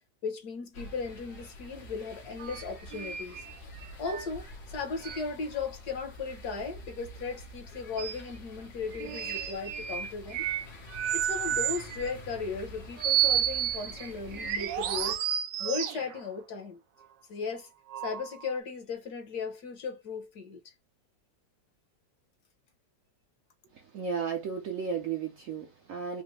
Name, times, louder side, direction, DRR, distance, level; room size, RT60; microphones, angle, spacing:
voice 1, 0.2-3.4 4.0-4.5 4.7-10.4 11.1-15.2 15.6-16.8 17.3-17.7 18.0-20.7, left 5 dB, 65° left, 1.5 m, -36 dB
sound 1, 0.7-15.2, left 1 dB, 85° left, 2.0 m, -47 dB
sound 2, 2.4-2.6 2.9-4.3 5.0-5.2 8.0-8.2 8.9-10.7 10.9-12.1 13.0-16.2 17.9-18.6, right 10 dB, 85° right, 1.3 m, -31 dB
voice 2, 23.7-26.2, right 6 dB, 65° right, 0.8 m, -34 dB
5.1 x 2.1 x 3.2 m
omnidirectional pair, 1.9 m